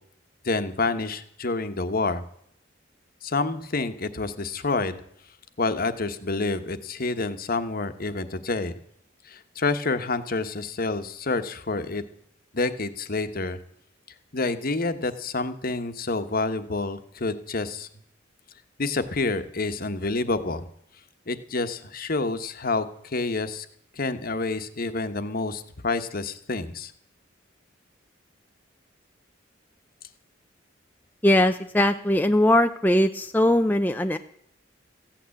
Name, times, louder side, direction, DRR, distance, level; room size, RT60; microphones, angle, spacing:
voice 1, 0.4-2.2 3.2-5.0 5.6-8.7 9.2-12.0 12.5-13.6 14.3-17.9 18.8-20.7 21.3-23.7 23.9-26.9, left 3 dB, 50° left, 10 dB, 1.2 m, -28 dB
voice 2, 31.2-34.2, left 1 dB, 10° left, 6 dB, 0.5 m, -20 dB
15.5 x 8.9 x 8.4 m, 0.70 s
head